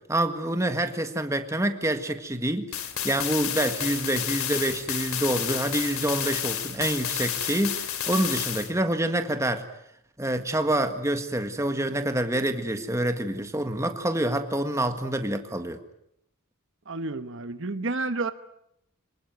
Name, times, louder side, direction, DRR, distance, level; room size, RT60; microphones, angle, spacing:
voice 1, 0.1-2.7 3.0-9.6 10.2-15.8, right 1 dB, 15° right, 7 dB, 1.8 m, -27 dB
sound 1, 2.7-8.7, left 10 dB, 80° left, 2.9 m, -30 dB
voice 2, 16.9-18.3, right 3 dB, 60° right, 10 dB, 1.2 m, -30 dB
27.0 x 19.5 x 9.5 m, 0.78 s
head